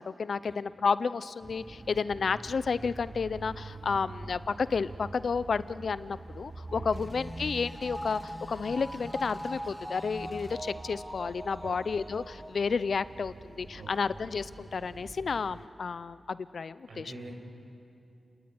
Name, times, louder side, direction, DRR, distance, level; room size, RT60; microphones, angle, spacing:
voice 1, 0.0-17.1, left 5 dB, 70° left, 15 dB, 0.7 m, -31 dB
sound 1, 1.4-15.7, right 3 dB, 40° right, 1.0 m, -46 dB
sound 2, 6.7-13.3 13.7-13.8, equal, 10° right, 2.0 m, -43 dB
sound 3, 6.9-10.6, left 1 dB, 25° left, 1.9 m, -46 dB
voice 2, 16.9-17.3, right 3 dB, 85° right, -1 dB, 6.5 m, -44 dB
29.5 x 20.0 x 9.5 m, 2.6 s
wide cardioid pair, 80°, 0 cm